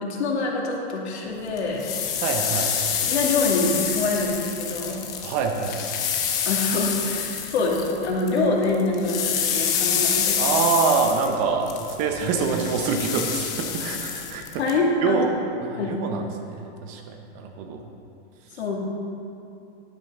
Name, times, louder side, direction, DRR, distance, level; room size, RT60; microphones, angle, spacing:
voice 1, 0.0-1.8 3.0-4.9 6.4-9.2 9.5-10.4 14.6-15.2 15.8-15.9 18.6-18.8, left 3 dB, 75° left, -2 dB, 2.5 m, -25 dB
sound 1, 1.6-8.4 8.6-14.7, left 8 dB, 10° left, 0.3 m, -27 dB
voice 2, 2.2-2.7 5.2-5.8 10.4-11.7 12.0-14.5 15.0-15.3 15.6-17.8, right 5 dB, 25° right, 4 dB, 0.6 m, -25 dB
11.0 x 11.0 x 3.8 m, 2.7 s
hypercardioid pair, 155°, 33 cm